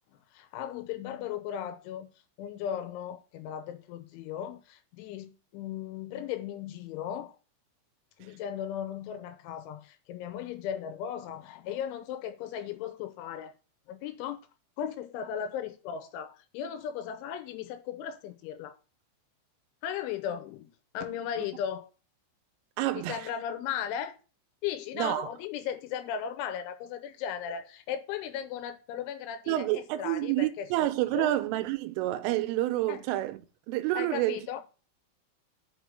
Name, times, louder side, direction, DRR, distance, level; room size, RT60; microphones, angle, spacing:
voice 1, 0.3-2.1 2.4-7.4 8.2-13.5 13.9-14.4 14.8-18.8 19.8-20.7 20.9-21.9 23.0-24.2 24.6-31.3 32.9-33.0 33.9-34.6, left 9 dB, 80° left, 3.1 m, -36 dB
voice 2, 22.8-23.3 25.0-25.3 29.5-33.4 33.7-34.4, right 15 dB, 85° right, 3.2 m, -28 dB
6.4 x 5.5 x 6.4 m
omnidirectional pair, 5.7 m